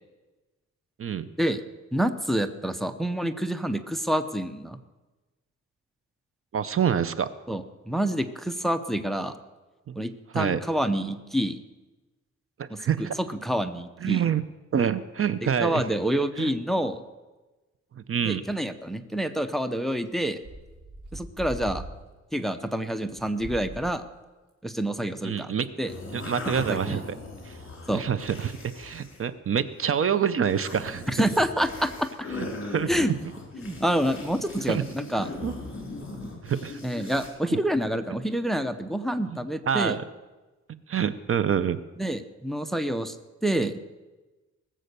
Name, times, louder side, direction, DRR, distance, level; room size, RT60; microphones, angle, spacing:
voice 1, 1.9-4.8 7.5-9.4 10.0-11.6 12.7-12.8 13.4-14.2 15.4-17.0 18.2-20.4 21.1-21.8 22.3-24.0 24.6-25.5 25.8-25.9 26.5-27.0 27.9-28.0 31.1-32.1 32.9-33.1 33.6-35.3 36.8-40.0 42.0-43.1 43.4-43.8, equal, ahead, 10 dB, 0.7 m, -27 dB
voice 2, 6.5-7.3 9.9-10.0 10.3-10.6 12.6-13.2 14.0-14.4 14.7-15.8 16.4-16.5 18.1-18.5 25.2-25.7 26.1-27.0 27.5-27.6 27.9-31.0 32.3-33.1 34.7-34.8 35.4-35.5 36.4-36.8 37.5-37.6 39.3-39.4 39.7-40.0 40.9-41.8, right 8 dB, 50° right, 14 dB, 0.6 m, -26 dB
sound 1, 18.5-18.6 19.1-19.2 20.1-20.2 20.4-21.9 22.3-22.4 23.2-23.9 24.5-24.6 25.2-25.3, right 2 dB, 85° right, 5.2 m, -40 dB
sound 2, 25.9-29.2 29.6-29.9 30.4-37.3, left 3 dB, 45° left, 4.1 m, -39 dB
19.5 x 7.6 x 6.8 m, 1.2 s
wide cardioid pair, 135°, 29 cm